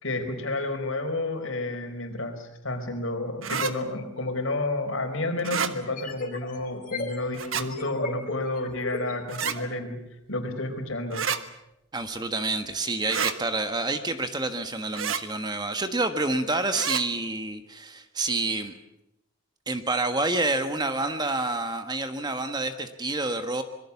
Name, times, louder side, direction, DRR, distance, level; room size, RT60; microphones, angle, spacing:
voice 1, 0.0-10.0 10.3-11.2, left 2 dB, 70° left, 5 dB, 4.6 m, -30 dB
sound 1, 3.4-3.7 5.4-5.7 7.3-7.7 9.3-9.6 11.1-11.4 13.1-13.4 14.9-15.2 16.7-17.0, right 6 dB, 70° right, 1.5 m, -28 dB
sound 2, 4.3-4.4 5.8-9.7, left 2 dB, 40° left, 4.0 m, -37 dB
voice 2, 11.9-18.7 19.7-23.6, right 2 dB, 20° right, 8 dB, 1.4 m, -28 dB
26.0 x 22.0 x 7.2 m, 0.85 s
head